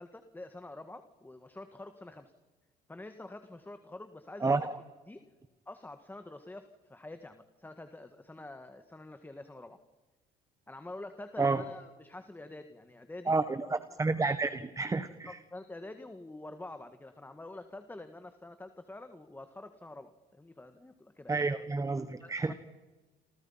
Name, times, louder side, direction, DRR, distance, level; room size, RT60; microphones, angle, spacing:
voice 1, 0.0-2.3 2.9-4.7 5.1-5.2 5.6-9.8 10.7-13.4 13.9-14.0 15.3-21.4 22.0-22.5, left 2 dB, 10° left, 8 dB, 1.7 m, -47 dB
voice 2, 4.4-4.7 11.4-11.6 13.3-15.4 21.3-22.5, right 3 dB, 20° right, 11 dB, 1.4 m, -30 dB
28.5 x 28.0 x 5.7 m, 1.2 s
cardioid pair, 110°, 17 cm